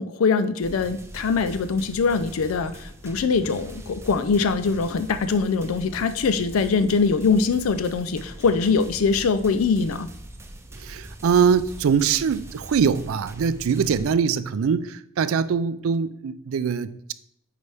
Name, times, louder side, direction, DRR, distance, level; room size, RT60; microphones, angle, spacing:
voice 1, 0.0-10.1, left 5 dB, 85° left, 11 dB, 0.4 m, -22 dB
sound 1, 0.6-14.1, right 1 dB, 15° right, 0.6 m, -42 dB
voice 2, 10.8-17.1, right 6 dB, 80° right, 14 dB, 0.4 m, -23 dB
8.3 x 4.8 x 3.4 m, 0.75 s
head